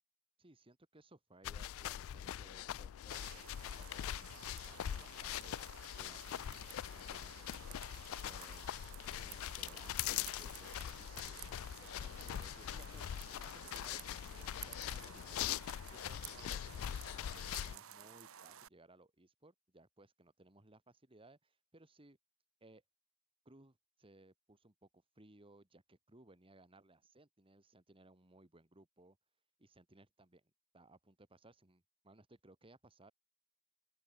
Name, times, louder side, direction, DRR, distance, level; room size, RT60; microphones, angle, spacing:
voice 1, 0.4-5.6 6.0-6.6 6.9-7.5 8.3-8.7 9.2-15.6 15.9-22.2 22.6-22.8 23.5-29.2 29.6-30.4 30.7-33.1, right 2 dB, 25° right, 2.2 m, -63 dB
sound 1, 1.4-17.8, left 11 dB, 70° left, 0.3 m, -43 dB
sound 2, 3.1-18.7, right 10 dB, 70° right, 1.1 m, -54 dB
open air
head